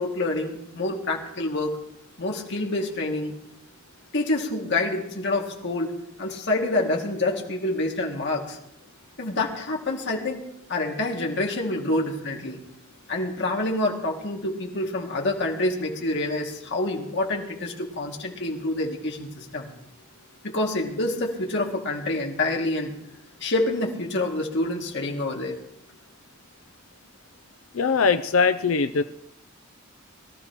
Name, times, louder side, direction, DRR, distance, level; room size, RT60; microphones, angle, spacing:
voice 1, 0.0-1.7 2.2-3.3 4.1-5.9 6.2-8.6 9.2-10.4 10.7-12.6 13.1-19.7 20.4-22.9 23.4-25.5, left 2 dB, 55° left, 0 dB, 2.3 m, -27 dB
voice 2, 27.7-29.0, left 5 dB, 75° left, 9 dB, 0.6 m, -21 dB
22.5 x 13.5 x 3.0 m, 0.77 s
head